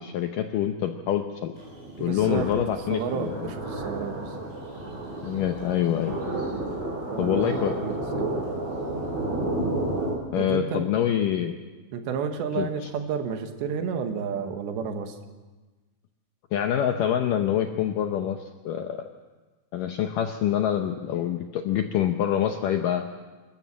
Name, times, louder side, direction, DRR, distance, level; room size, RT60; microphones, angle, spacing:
voice 1, 0.0-1.5 2.0-3.5 5.2-6.2 7.2-7.8 10.3-11.6 12.6-12.7 16.5-19.1 19.7-23.1, left 10 dB, 80° left, 5 dB, 1.9 m, -26 dB
sound 1, 1.5-10.1, right 1 dB, 20° right, 8.3 m, -31 dB
voice 2, 2.0-2.5 2.9-4.5 7.1-8.4 10.4-10.9 11.9-15.2, right 6 dB, 85° right, 6 dB, 3.7 m, -31 dB
27.0 x 13.5 x 7.4 m, 1.3 s
omnidirectional pair, 4.9 m